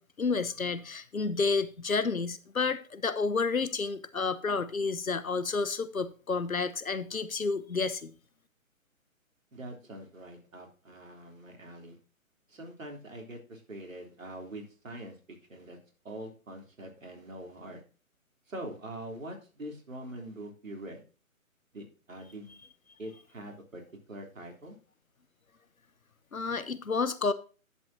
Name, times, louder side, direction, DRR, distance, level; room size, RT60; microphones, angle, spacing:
voice 1, 0.0-8.1 26.3-27.3, left 4 dB, 80° left, 1.1 m, -30 dB
voice 2, 9.5-12.0 12.5-15.8 16.0-17.8 18.5-21.0 21.7-22.6 23.0-23.8 24.1-24.8, right 1 dB, 70° right, 3.4 m, -44 dB
10.5 x 8.6 x 2.8 m
figure-of-eight pair, 135°, 42 cm